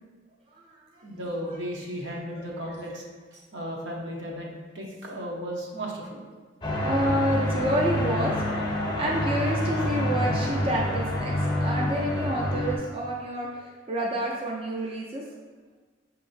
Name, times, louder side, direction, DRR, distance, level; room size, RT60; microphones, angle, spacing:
voice 1, 1.0-3.0 3.3-4.5 4.7-6.2 14.8-14.9, equal, 70° right, -2 dB, 0.8 m, -35 dB
sound 1, 6.6-12.8, left 1 dB, 25° left, 0.6 m, -27 dB
voice 2, 6.7-15.2, right 1 dB, 30° right, -3 dB, 0.4 m, -29 dB
5.6 x 2.8 x 2.6 m, 1.4 s
head